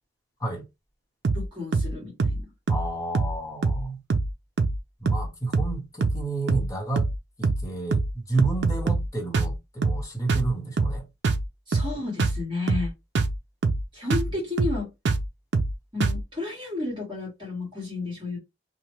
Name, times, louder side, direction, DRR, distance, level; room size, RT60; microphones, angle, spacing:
sound 1, 1.2-1.5 1.7-1.9 2.2-2.4 2.7-2.9 3.1-3.4 3.6-3.8 4.1-4.3 4.6-4.8 5.1-5.3 5.5-5.8 6.0-6.2 6.5-6.7 7.0-7.2 7.4-7.7 7.9-8.1 8.4-9.1 9.3-9.6 9.8-10.0 10.3-10.5 10.8-11.0 11.2-11.5 11.7-11.9 12.2-12.4 12.7-12.9 13.1-13.4 13.6-13.8 14.1-14.3 14.6-14.8 15.1-15.3 15.5-15.7 16.0-16.2, right 3 dB, 70° right, 0.5 m, -24 dB
voice 1, 1.3-2.5 11.7-12.9 13.9-14.9 15.9-18.4, left 3 dB, 25° right, 1.6 m, -32 dB
voice 2, 2.7-4.0 5.0-7.1 7.4-11.0, right 3 dB, 20° left, 1.0 m, -30 dB
3.0 x 2.1 x 3.0 m
head